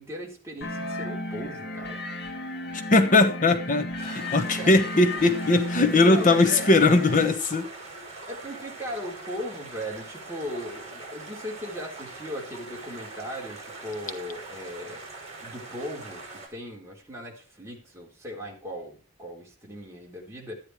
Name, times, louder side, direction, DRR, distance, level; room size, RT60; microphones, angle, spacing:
voice 1, 0.0-2.0 4.5-4.7 6.0-6.7 8.3-15.0 15.4-16.2 16.5-20.6, equal, 15° right, 3.9 m, -38 dB
sound 1, 0.6-7.3, left 1 dB, 55° left, 1.8 m, -34 dB
voice 2, 2.9-7.7, left 2 dB, 40° left, 1.1 m, -20 dB
sound 2, 4.0-16.5, right 3 dB, 35° right, 5.4 m, -42 dB
12.5 x 10.0 x 4.7 m
head